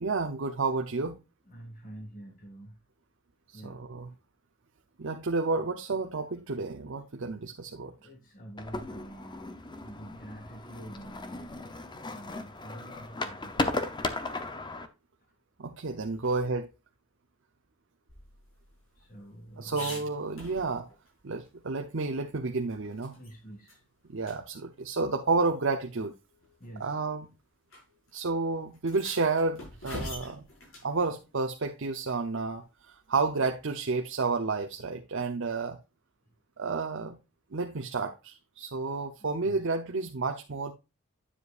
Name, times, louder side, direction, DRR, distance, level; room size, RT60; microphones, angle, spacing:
voice 1, 0.0-1.2 3.5-4.1 5.0-7.9 15.6-16.7 19.6-20.9 21.2-23.1 24.1-26.1 26.8-27.3 28.1-30.5 30.8-35.8 36.6-37.2 37.5-40.7, right 3 dB, 60° right, 0.7 m, -31 dB
voice 2, 1.4-2.8 3.5-3.8 7.9-11.5 12.1-13.8 16.2-16.5 19.0-20.1 20.6-20.8 23.1-23.8 26.4-27.0 39.4-39.6, right 1 dB, 40° left, 2.1 m, -47 dB
sound 1, 8.6-14.9, left 2 dB, 20° left, 0.7 m, -36 dB
sound 2, 18.1-21.1 21.4-21.5 21.9-23.3 23.7-23.8 24.2-24.4 25.4-25.5 26.4-26.7 27.7-27.8 28.1-28.2 28.7-30.9 33.2-33.7, left 1 dB, 70° left, 5.3 m, -44 dB
9.8 x 7.4 x 2.5 m
head